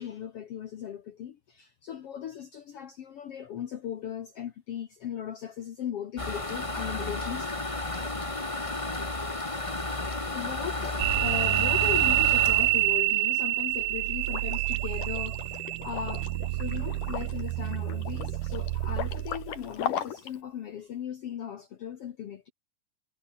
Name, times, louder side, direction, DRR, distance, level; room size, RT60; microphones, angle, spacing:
voice 1, 0.0-7.5 10.2-15.4 15.8-22.5, left 9 dB, 80° left, 1.3 m, -38 dB
sound 1, 6.2-13.9 14.4-14.5 14.8-14.9 15.2-15.5, left 2 dB, 25° left, 0.7 m, -33 dB
sound 2, 11.0-19.6, right 19 dB, 80° right, 2.0 m, -27 dB
Liquid, 14.2-20.4, left 9 dB, 60° left, 3.5 m, -38 dB
omnidirectional pair, 4.5 m